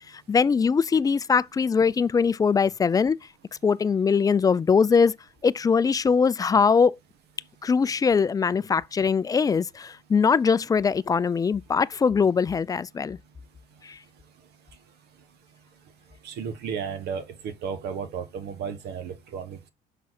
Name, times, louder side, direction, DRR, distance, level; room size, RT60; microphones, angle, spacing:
voice 1, 0.3-3.2 3.6-5.1 5.4-6.9 7.6-13.2 13.8-14.0, left 5 dB, 20° left, 0.3 m, -22 dB
voice 2, 16.2-19.7, right 6 dB, 75° right, 1.5 m, -34 dB
6.2 x 5.9 x 4.2 m
cardioid pair, 110°, 17 cm